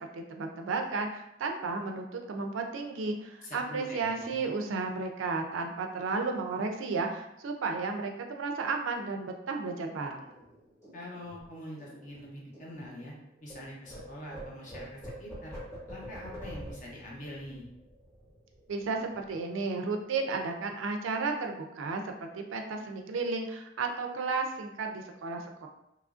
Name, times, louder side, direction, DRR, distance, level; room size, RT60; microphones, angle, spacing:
voice 1, 0.1-10.2 18.7-25.7, right 4 dB, 85° right, 4 dB, 0.4 m, -33 dB
voice 2, 3.4-4.4 10.9-13.1 13.4-15.6 15.9-17.6, left 1 dB, 40° left, -3 dB, 0.7 m, -44 dB
sound 1, 10.2-13.6 13.8-18.8 19.1-19.4 19.6-20.2, equal, 15° left, 0.9 m, -47 dB
2.9 x 2.4 x 2.4 m, 0.83 s
head